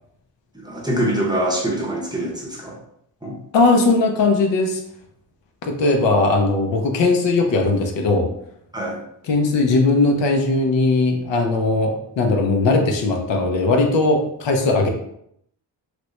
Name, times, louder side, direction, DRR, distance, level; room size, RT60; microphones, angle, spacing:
voice 1, 0.5-2.8 3.2-3.4 8.7-9.0, right 1 dB, 10° right, -3 dB, 0.7 m, -24 dB
voice 2, 3.5-4.8 5.7-8.3 9.3-14.9, left 3 dB, 75° left, 3 dB, 0.7 m, -18 dB
3.0 x 2.5 x 3.1 m, 0.73 s
wide cardioid pair, 110°, 44 cm